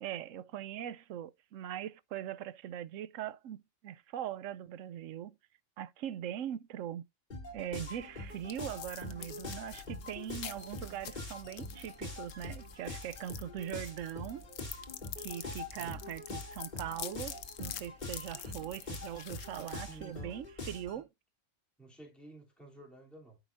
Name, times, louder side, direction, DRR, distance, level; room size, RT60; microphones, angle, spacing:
voice 1, 0.0-5.4 5.8-7.0 7.5-14.4 15.2-21.1, right 10 dB, 80° right, 1.0 m, -41 dB
sound 1, 7.3-21.0, left 2 dB, 35° left, 2.7 m, -44 dB
sound 2, 7.8-20.4, left 9 dB, 85° left, 1.2 m, -48 dB
voice 2, 15.7-16.0 19.6-20.4 20.9-21.0 21.8-23.4, right 2 dB, ahead, 3.1 m, -53 dB
13.0 x 4.9 x 2.6 m
omnidirectional pair, 1.3 m